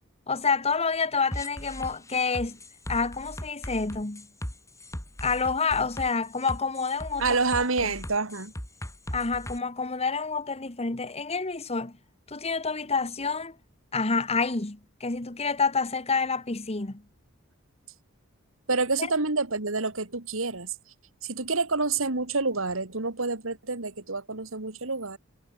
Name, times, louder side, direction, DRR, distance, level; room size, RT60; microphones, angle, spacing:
voice 1, 0.3-2.6 2.9-4.3 5.2-7.2 9.1-12.0 12.3-13.6 13.9-17.0, left 4 dB, 30° left, 1.4 m, -28 dB
sound 1, 1.3-9.6, equal, 15° left, 5.3 m, -38 dB
voice 2, 7.2-8.5 18.7-20.7 21.2-25.2, right 3 dB, 70° right, 2.6 m, -28 dB
head